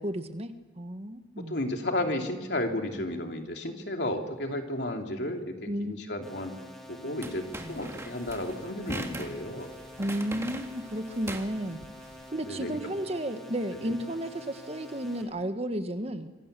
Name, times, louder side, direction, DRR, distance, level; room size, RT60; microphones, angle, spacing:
voice 1, 0.0-1.6 5.7-5.9 7.6-7.8 10.0-11.8 12.3-16.3, right 1 dB, 35° right, 8 dB, 1.5 m, -33 dB
voice 2, 1.4-6.5 6.9-9.7 12.4-12.8 13.8-13.9, left 1 dB, 65° left, 3 dB, 3.2 m, -33 dB
sound 1, 6.2-15.2, left 1 dB, ahead, 4.9 m, -48 dB
sound 2, 7.2-12.2, right 1 dB, 15° right, 2.1 m, -41 dB
26.0 x 26.0 x 6.9 m, 1.2 s
head